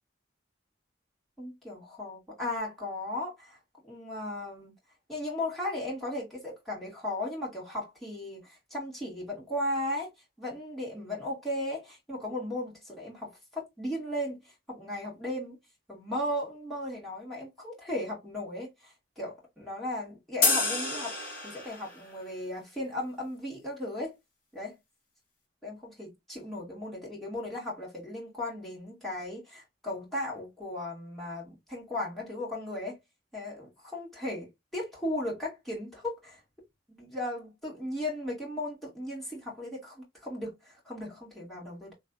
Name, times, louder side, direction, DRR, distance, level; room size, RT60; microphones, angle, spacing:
voice 1, 1.4-3.6 3.8-4.7 5.1-10.1 10.4-14.4 14.7-15.6 15.9-24.1 24.5-24.7 25.6-33.0 33.3-36.4 37.0-41.9, left 1 dB, ahead, 2.2 m, -36 dB
sound 1, 20.4-22.0, left 3 dB, 55° left, 1.9 m, -28 dB
3.3 x 3.2 x 2.5 m
head